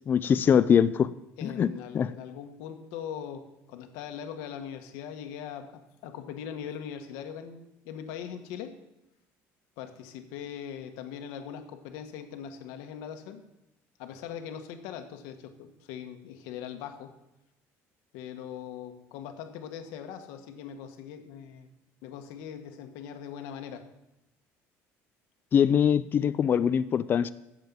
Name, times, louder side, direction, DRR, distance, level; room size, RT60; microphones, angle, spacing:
voice 1, 0.1-1.1 1.4-1.7 1.9-2.1 25.5-27.3, left 8 dB, 35° left, 13 dB, 0.4 m, -22 dB
voice 2, 1.4-8.8 9.8-13.4 14.0-17.2 18.1-21.7 22.0-23.9, left 8 dB, 85° left, 6 dB, 1.3 m, -41 dB
9.3 x 7.4 x 7.4 m, 0.91 s
cardioid pair, 120°, 6 cm